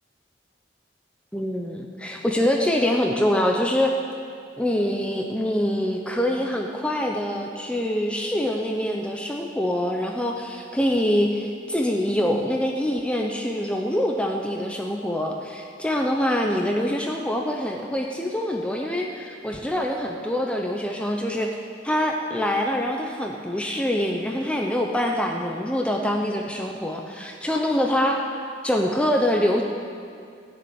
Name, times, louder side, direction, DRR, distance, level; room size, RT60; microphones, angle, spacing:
voice 1, 1.3-3.9 4.6-21.5 21.8-28.2 28.6-29.6, left 1 dB, 5° left, 1 dB, 0.8 m, -25 dB
16.0 x 7.0 x 9.2 m, 2.3 s
head